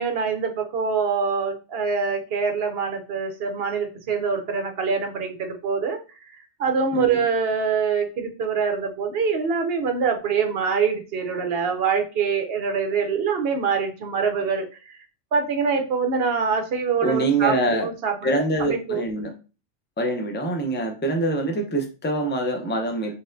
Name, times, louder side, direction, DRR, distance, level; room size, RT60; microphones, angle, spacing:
voice 1, 0.0-6.0 6.3-15.0 15.3-19.1, right 5 dB, 55° right, 5 dB, 0.8 m, -25 dB
voice 2, 17.0-17.9 18.2-19.3 20.0-23.1, right 2 dB, 15° left, 3 dB, 0.4 m, -24 dB
4.3 x 3.5 x 2.5 m, 0.33 s
omnidirectional pair, 1.3 m